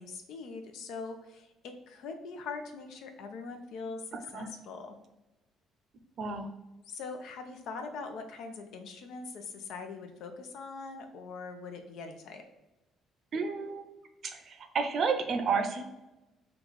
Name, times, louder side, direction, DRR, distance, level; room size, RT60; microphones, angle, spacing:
voice 1, 0.0-4.0 4.3-5.0 6.8-12.4, left 4 dB, 75° left, 5 dB, 0.7 m, -42 dB
voice 2, 6.2-6.5 13.3-13.8 14.2-15.8, right 5 dB, 50° right, 7 dB, 0.6 m, -31 dB
3.8 x 2.4 x 4.6 m, 1.0 s
cardioid pair, 120°, 0 cm